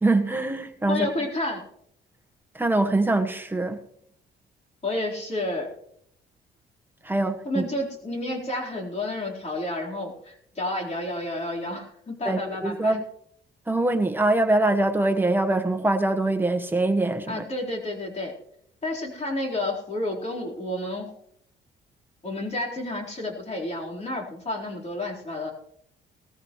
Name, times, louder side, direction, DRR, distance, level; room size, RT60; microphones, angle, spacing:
voice 1, 0.0-1.1 2.5-3.8 7.0-7.7 12.2-13.0 13.7-17.4, right 2 dB, 10° right, 5 dB, 1.3 m, -23 dB
voice 2, 0.9-1.6 4.8-5.7 7.4-13.0 17.3-18.3 18.8-21.1 22.2-25.5, left 1 dB, 35° left, -3 dB, 4.3 m, -30 dB
19.0 x 14.5 x 3.2 m, 0.71 s
cardioid pair, 90°, 20 cm